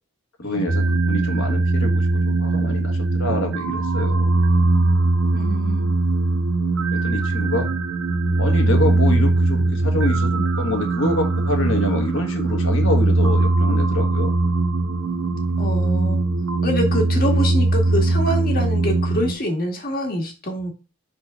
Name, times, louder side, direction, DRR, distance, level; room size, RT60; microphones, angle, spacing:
voice 1, 0.4-4.4 6.9-7.7 8.4-14.3, left 1 dB, 60° left, 4 dB, 1.3 m, -26 dB
sound 1, 0.7-19.3, right 2 dB, 60° right, 0.7 m, -20 dB
voice 2, 5.3-5.9 15.6-16.2 16.6-20.7, equal, 40° left, 2 dB, 1.5 m, -25 dB
4.6 x 3.9 x 5.5 m, 0.34 s
head